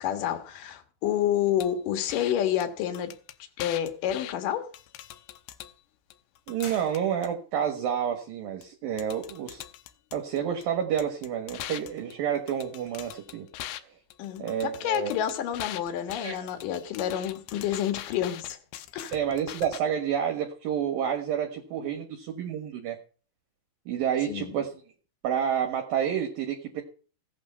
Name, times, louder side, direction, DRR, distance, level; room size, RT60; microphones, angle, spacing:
voice 1, 0.0-3.1 3.6-4.7 14.2-18.6 18.9-19.1 24.3-24.5, left 10 dB, 65° left, 2.3 m, -29 dB
sound 1, 1.6-1.7 2.1-2.3 2.6-2.7 2.9-4.3 4.7-5.7 6.1-7.3 8.6-8.7 9.0-10.6 11.0-13.8 14.1-19.8, left 13 dB, 90° left, 2.2 m, -42 dB
voice 2, 6.5-9.6 10.1-13.5 14.4-15.2 16.2-16.4 19.1-23.0 23.9-24.7 25.2-26.8, right 8 dB, 60° right, 2.7 m, -29 dB
sound 2, 6.6-7.6, left 3 dB, 35° left, 1.8 m, -46 dB
16.5 x 8.7 x 5.7 m
omnidirectional pair, 5.6 m